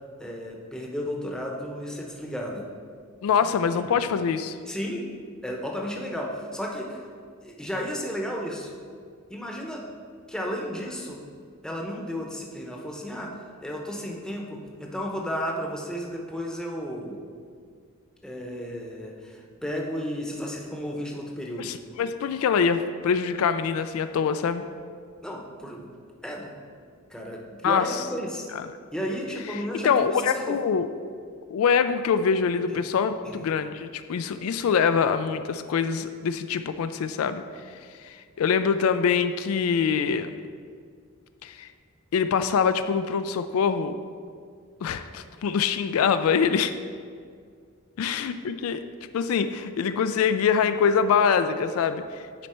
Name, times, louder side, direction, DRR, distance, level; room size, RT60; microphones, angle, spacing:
voice 1, 0.2-2.6 4.7-5.1 5.4-7.1 7.4-8.7 9.3-9.8 10.3-11.2 11.6-17.2 18.2-21.7 25.2-25.9 26.2-26.5 27.1-28.5 28.9-30.6 32.7-32.8 33.2-33.4, equal, 5° left, -1 dB, 0.8 m, -33 dB
voice 2, 3.2-4.6 21.6-24.6 27.6-27.8 28.5-28.6 29.8-30.9 31.5-37.4 37.7-40.3 41.4-41.7 42.1-44.0 44.8-46.7 48.0-48.8 49.1-52.2, left 6 dB, 75° left, 10 dB, 0.3 m, -24 dB
9.9 x 4.1 x 4.3 m, 2.1 s
head